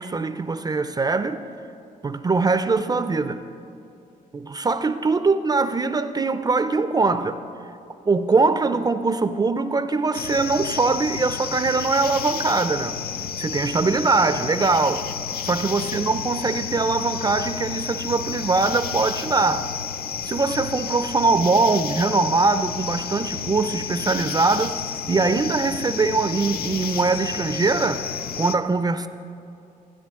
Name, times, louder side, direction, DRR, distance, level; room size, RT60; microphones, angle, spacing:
voice 1, 0.0-1.4 2.0-3.5 4.3-7.4 8.1-13.0 13.4-15.1 15.4-19.8 20.3-24.8 25.1-28.1 28.4-29.1, right 3 dB, 25° right, 0.4 m, -22 dB
sound 1, 10.1-28.5, left 8 dB, 75° left, 0.5 m, -31 dB
15.5 x 10.0 x 3.6 m
cardioid pair, 90°, 16 cm